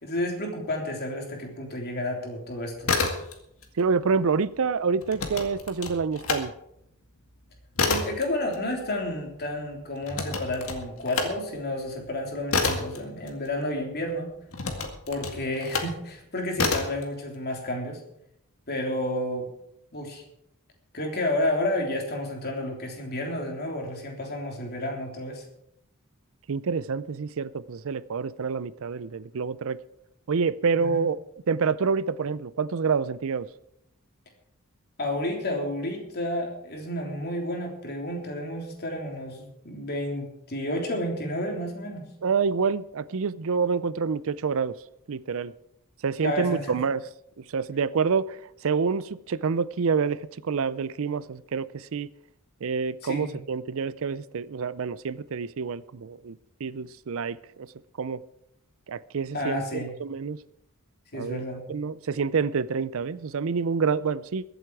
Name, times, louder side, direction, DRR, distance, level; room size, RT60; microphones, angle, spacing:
voice 1, 0.0-2.9 7.9-14.3 15.1-18.0 18.7-19.5 19.9-20.2 20.9-25.4 30.8-31.0 35.0-42.1 46.2-46.8 53.0-53.4 59.3-59.9 61.1-61.6, left 1 dB, 50° left, 3.3 m, -31 dB
sound 1, 2.7-3.7 4.0-6.4 6.8-13.9 14.5-16.0 16.5-17.0, left 4 dB, 70° left, 2.1 m, -29 dB
voice 2, 3.8-6.5 26.5-29.8 30.3-31.2 31.5-33.5 42.2-44.8 45.1-45.5 46.0-47.0 47.5-52.1 52.6-57.7 58.0-58.2 58.9-59.6 60.0-60.4 61.1-61.4 61.7-64.4, right 5 dB, 65° right, 0.5 m, -27 dB
22.5 x 8.1 x 4.7 m
head